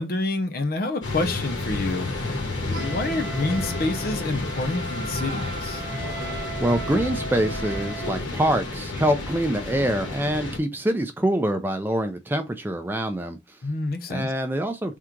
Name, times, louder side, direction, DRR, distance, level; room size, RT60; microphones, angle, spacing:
voice 1, 0.0-5.8 13.6-14.3, left 2 dB, 50° left, 0.6 m, -28 dB
sound 1, 1.0-10.6, left 2 dB, 85° left, 1.4 m, -31 dB
Wind instrument woodwind instrument, 2.7-8.2, right 4 dB, 65° right, 0.8 m, -38 dB
voice 2, 6.6-13.6 14.1-15.0, right 1 dB, 10° right, 0.4 m, -25 dB
3.7 x 2.4 x 4.4 m
head